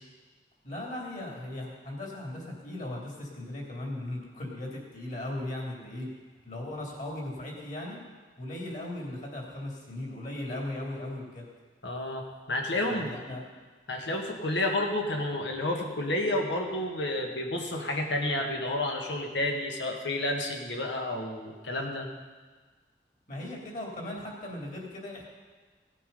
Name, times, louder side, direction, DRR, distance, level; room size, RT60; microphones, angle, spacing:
voice 1, 0.6-6.1 6.4-8.0 8.4-11.4 12.9-13.4 23.3-25.3, left 1 dB, 45° left, -2 dB, 2.9 m, -37 dB
voice 2, 11.8-13.4 13.9-22.1, left 1 dB, 90° left, 2 dB, 1.8 m, -30 dB
16.5 x 8.4 x 5.4 m, 1.4 s
head